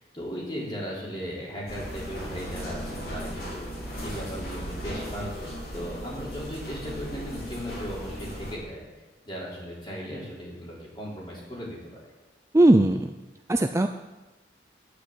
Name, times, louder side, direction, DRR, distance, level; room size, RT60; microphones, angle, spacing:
voice 1, 0.0-3.7 4.0-8.8 9.2-12.0, equal, 25° left, -4 dB, 3.6 m, -37 dB
sound 1, 1.7-8.5, equal, 55° left, 3.6 m, -37 dB
voice 2, 12.5-13.1 13.5-13.9, right 1 dB, 15° right, 7 dB, 0.4 m, -18 dB
10.0 x 9.6 x 7.6 m, 1.1 s
head